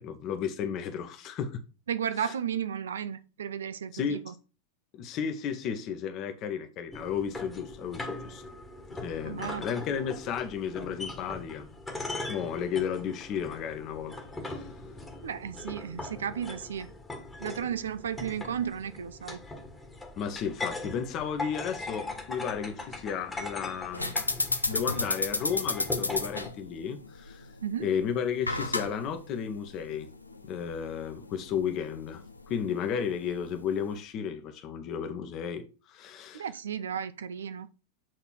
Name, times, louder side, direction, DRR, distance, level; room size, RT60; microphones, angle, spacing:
voice 1, 0.0-1.6 2.2-2.3 3.9-4.3 4.9-8.5 9.0-11.7 12.3-14.2 14.4-14.7 20.2-24.2 24.7-27.5 27.8-30.1 30.5-36.4, left 7 dB, 35° left, 1.2 m, -33 dB
voice 2, 1.9-4.3 9.2-9.7 15.2-16.9 17.4-19.4 27.6-27.9 36.3-37.7, right 8 dB, 65° right, 0.5 m, -34 dB
sound 1, 6.9-26.5, left 2 dB, 10° left, 1.5 m, -40 dB
sound 2, 23.9-34.0, left 2 dB, 80° left, 0.6 m, -34 dB
7.6 x 4.0 x 4.6 m
figure-of-eight pair, 90°, 0 cm